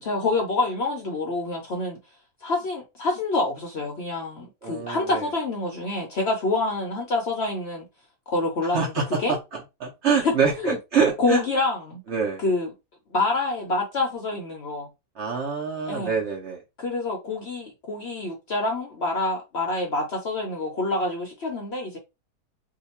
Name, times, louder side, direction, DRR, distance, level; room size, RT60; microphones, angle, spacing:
voice 1, 0.0-2.0 2.4-7.9 8.3-8.9 9.2-9.4 10.2-10.3 10.6-10.8 11.2-12.0 12.4-12.7 13.1-14.9 15.9-16.1 16.8-22.0, left 2 dB, 55° left, 0.7 m, -27 dB
voice 2, 4.6-5.3 8.7-11.4 12.1-12.4 15.2-16.6, right 5 dB, 55° right, 0.8 m, -25 dB
2.8 x 2.2 x 4.1 m
omnidirectional pair, 1.7 m